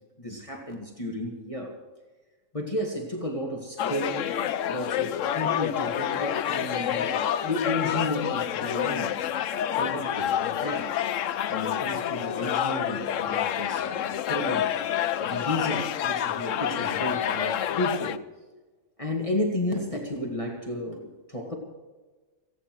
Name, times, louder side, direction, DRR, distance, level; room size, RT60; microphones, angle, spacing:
voice 1, 0.2-1.7 2.5-4.3 4.7-9.1 9.8-10.9 11.5-14.7 15.2-18.2 19.0-21.5, left 1 dB, 25° left, 0 dB, 2.1 m, -32 dB
sound 1, 3.8-18.2, left 10 dB, 70° left, 1.0 m, -28 dB
29.5 x 9.9 x 4.7 m, 1.3 s
omnidirectional pair, 1.4 m